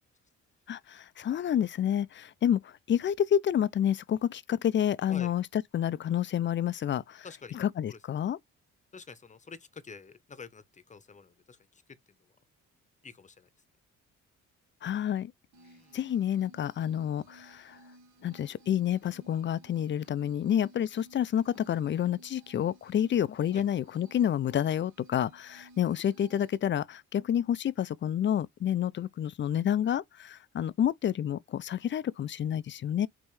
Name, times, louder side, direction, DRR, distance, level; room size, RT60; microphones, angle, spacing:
voice 1, 0.7-8.4 14.8-15.3 15.9-17.8 18.2-33.1, left 10 dB, 40° left, 0.4 m, -29 dB
voice 2, 7.2-7.6 7.9-8.0 8.9-11.6 13.0-13.5 15.6-16.0 23.5-23.6, left 5 dB, 25° left, 0.8 m, -47 dB
sound 1, 15.5-26.6, right 1 dB, 75° right, 1.3 m, -57 dB
5.5 x 3.0 x 3.2 m
cardioid pair, 90°, 30 cm